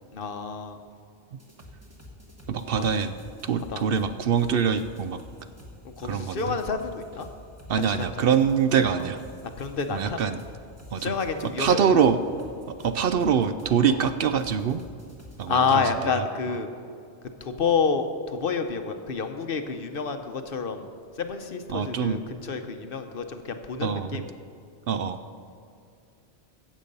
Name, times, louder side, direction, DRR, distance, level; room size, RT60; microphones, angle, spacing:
voice 1, 0.1-0.8 2.7-2.8 3.7-3.8 5.8-7.3 7.7-8.1 9.0-9.1 9.6-10.2 11.0-12.0 13.9-14.0 15.5-16.7 17.4-20.9 21.2-24.2, left 5 dB, 55° left, 7 dB, 0.9 m, -29 dB
sound 1, 1.4-15.5, left 1 dB, 15° right, 1.7 m, -48 dB
voice 2, 2.5-3.1 3.4-5.2 6.0-6.6 7.7-9.2 9.9-10.4 10.9-11.2 11.6-12.2 12.7-14.8 15.4-15.8 21.7-22.2 23.8-24.2 24.9-25.2, right 7 dB, 65° right, 10 dB, 0.7 m, -24 dB
15.5 x 7.5 x 5.4 m, 2.4 s
omnidirectional pair, 1.1 m